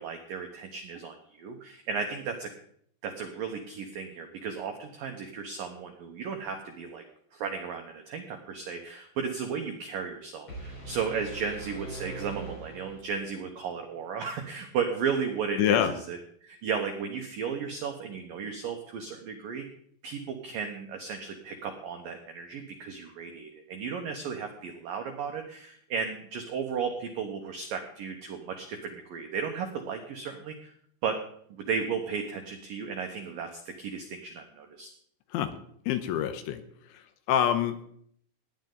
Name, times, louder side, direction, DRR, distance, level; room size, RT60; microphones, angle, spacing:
voice 1, 0.0-2.5 3.0-7.0 7.3-19.7 20.0-30.7 31.0-31.2 31.5-34.9, right 6 dB, 85° right, 4 dB, 2.0 m, -34 dB
sound 1, 10.5-13.5, right 2 dB, 25° left, 4.6 m, -42 dB
voice 2, 15.6-15.9 35.3-35.5 35.9-36.6 37.3-37.8, left 10 dB, 80° left, 9 dB, 3.0 m, -25 dB
17.5 x 10.5 x 3.9 m, 0.64 s
omnidirectional pair, 5.7 m